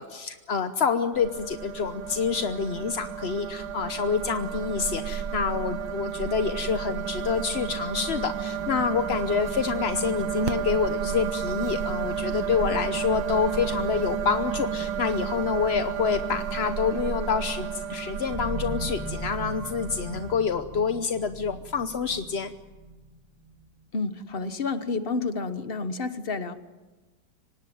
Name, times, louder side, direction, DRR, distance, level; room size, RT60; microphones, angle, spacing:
voice 1, 0.0-22.5, left 6 dB, 50° left, 9 dB, 0.8 m, -27 dB
sound 1, 1.1-20.3, right 7 dB, 85° right, 1.9 m, -32 dB
sound 2, 7.5-13.9 18.3-24.3, right 1 dB, 25° right, 2.5 m, -42 dB
voice 2, 23.9-26.5, left 3 dB, 35° left, 11 dB, 1.2 m, -30 dB
25.0 x 19.0 x 9.3 m, 1.2 s
omnidirectional pair, 2.2 m